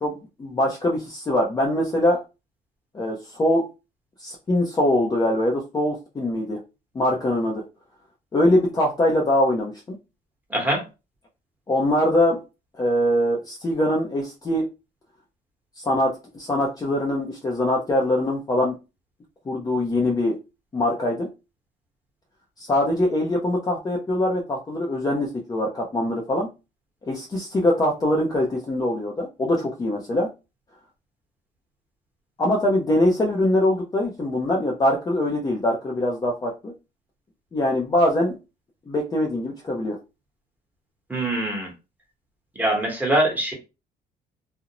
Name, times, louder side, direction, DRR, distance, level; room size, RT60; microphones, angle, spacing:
voice 1, 0.0-2.2 2.9-3.6 4.2-6.6 6.9-7.6 8.3-10.0 11.7-12.4 12.8-14.7 15.8-18.7 19.5-20.3 20.7-21.3 22.6-26.5 27.1-30.3 32.4-36.7 37.5-38.4 38.9-40.0, left 1 dB, 20° left, -1 dB, 0.5 m, -23 dB
voice 2, 10.5-10.8 41.1-41.7 42.6-43.5, right 1 dB, 10° right, 0 dB, 1.1 m, -23 dB
2.5 x 2.0 x 2.8 m, 0.28 s
cardioid pair, 110°, 17 cm